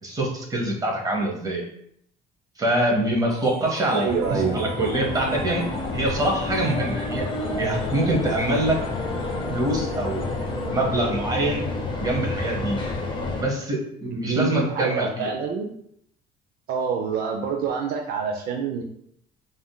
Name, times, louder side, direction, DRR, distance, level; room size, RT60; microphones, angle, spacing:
voice 1, 0.0-1.6 2.6-5.6 5.9-7.3 7.6-8.8 9.5-10.3 10.7-11.6 12.0-12.8 13.4-15.3, right 1 dB, 20° right, -1 dB, 0.8 m, -24 dB
sound 1, 3.3-11.1, right 1 dB, 5° right, 1.2 m, -42 dB
voice 2, 3.9-4.6 14.1-15.7 16.7-18.8, right 6 dB, 65° right, 2 dB, 0.4 m, -26 dB
sound 2, 4.1-13.4, left 2 dB, 30° left, 0.5 m, -29 dB
3.5 x 2.5 x 2.2 m, 0.71 s
cardioid pair, 110°, 17 cm